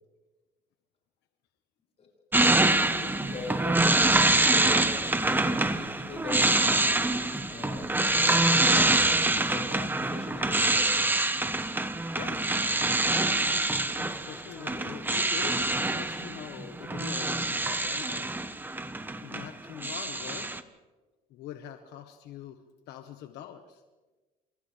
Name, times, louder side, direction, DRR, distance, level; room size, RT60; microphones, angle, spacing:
voice 1, 2.3-3.9 4.2-4.9 5.2-7.0 7.4-7.9 8.3-11.0 14.5-14.9, left 3 dB, 40° left, 0 dB, 6.6 m, -42 dB
sound 1, 2.3-19.5 19.8-20.6, right 2 dB, 10° right, 1.2 m, -25 dB
voice 2, 14.0-18.3 19.2-20.5 21.3-22.6 22.9-23.8, left 10 dB, 85° left, 6 dB, 1.4 m, -43 dB
29.0 x 27.5 x 3.4 m, 1.2 s
cardioid pair, 110°, 17 cm